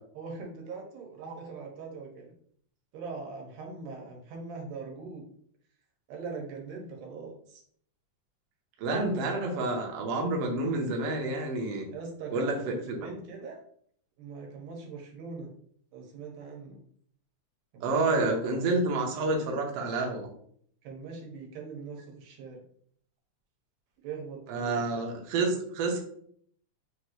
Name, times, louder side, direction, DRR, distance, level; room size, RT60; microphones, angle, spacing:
voice 1, 0.1-2.3 2.9-5.2 6.1-7.6 11.9-13.6 14.2-15.5 15.9-16.8 17.7-18.3 20.8-22.6 24.0-24.8 25.5-25.6, right 4 dB, 90° right, 0 dB, 2.5 m, -41 dB
voice 2, 8.8-11.9 12.3-13.0 17.8-20.3 24.5-26.0, right 2 dB, 75° right, 1 dB, 1.4 m, -29 dB
5.1 x 2.5 x 3.0 m, 0.63 s
omnidirectional pair, 3.7 m